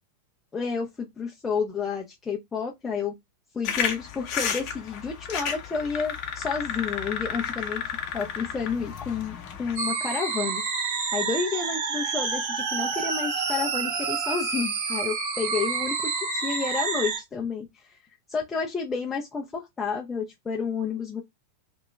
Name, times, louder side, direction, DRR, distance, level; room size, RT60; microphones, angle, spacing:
voice 1, 0.5-3.1 3.5-7.8 8.1-10.6 11.1-18.0 18.3-21.2, left 5 dB, 15° left, 0.6 m, -30 dB
sound 1, 3.6-9.8, left 7 dB, 40° left, 0.9 m, -32 dB
sound 2, 9.8-17.2, right 5 dB, 50° right, 1.1 m, -28 dB
3.0 x 3.0 x 2.3 m
figure-of-eight pair, 90°, 0 cm